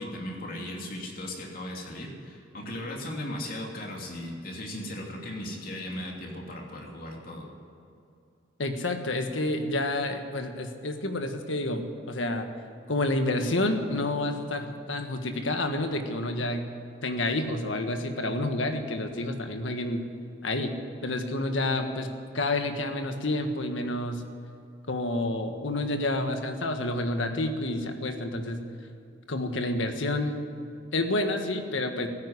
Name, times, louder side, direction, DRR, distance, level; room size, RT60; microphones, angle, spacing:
voice 1, 0.0-7.5, left 1 dB, 50° left, -1 dB, 2.9 m, -37 dB
voice 2, 8.6-12.5 12.9-16.7 17.0-20.0 20.4-20.7 21.0-24.2 24.9-28.6 29.3-30.3 30.9-32.1, left 2 dB, 80° left, 6 dB, 1.5 m, -29 dB
15.5 x 9.5 x 9.9 m, 2.6 s
head